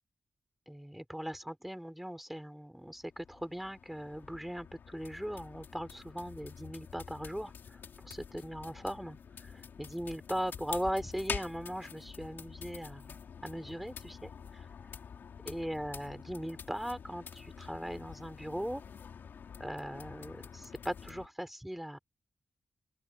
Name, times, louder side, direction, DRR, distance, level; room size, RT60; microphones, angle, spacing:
voice 1, 0.7-13.2 13.4-14.7 15.5-18.8 19.6-22.0, equal, 5° right, 5.9 m, -39 dB
sound 1, 2.8-21.3, left 7 dB, 80° left, 4.5 m, -47 dB
open air
cardioid pair, 80°, 3 cm